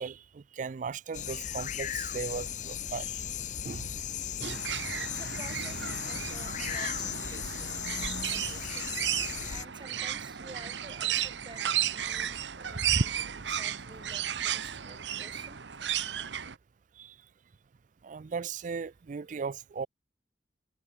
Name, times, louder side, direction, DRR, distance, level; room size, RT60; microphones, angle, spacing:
voice 1, 0.0-3.2 3.6-3.9 4.4-4.6 17.0-17.1 18.0-19.9, right 5 dB, 45° right, 0.4 m, -37 dB
sound 1, 1.1-9.6, left 9 dB, 45° left, 0.6 m, -36 dB
sound 2, 4.4-16.5, right 9 dB, 85° right, 1.0 m, -33 dB
voice 2, 5.0-8.9 9.5-11.6 11.9-15.6, right 2 dB, 25° right, 6.0 m, -51 dB
head